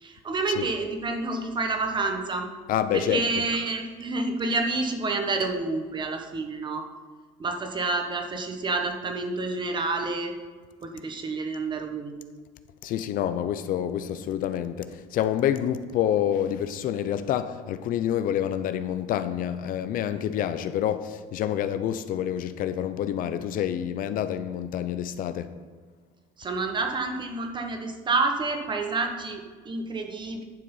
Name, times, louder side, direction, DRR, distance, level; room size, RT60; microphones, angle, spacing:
voice 1, 0.0-2.5 2.9-6.9 7.4-10.3 10.8-12.1 26.4-30.4, right 3 dB, 30° right, 1.4 m, -29 dB
voice 2, 2.7-3.3 12.8-25.5, left 10 dB, 55° left, 0.6 m, -27 dB
11.0 x 6.7 x 5.6 m
cardioid pair, 115°, 17 cm